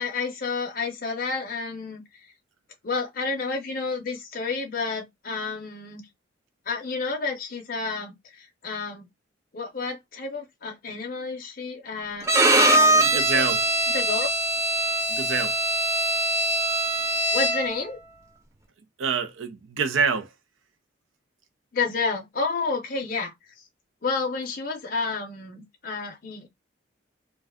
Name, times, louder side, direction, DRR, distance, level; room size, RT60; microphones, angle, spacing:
voice 1, 0.0-2.3 2.8-6.0 6.7-9.1 9.5-13.5 13.9-14.3 17.3-18.0 21.7-23.5 24.0-26.5, left 4 dB, 45° left, 0.5 m, -30 dB
Bowed string instrument, 12.2-17.8, right 2 dB, 15° right, 0.3 m, -22 dB
voice 2, 13.0-13.6 15.1-15.5 19.0-20.3, right 5 dB, 85° right, 0.6 m, -26 dB
2.5 x 2.2 x 3.4 m
head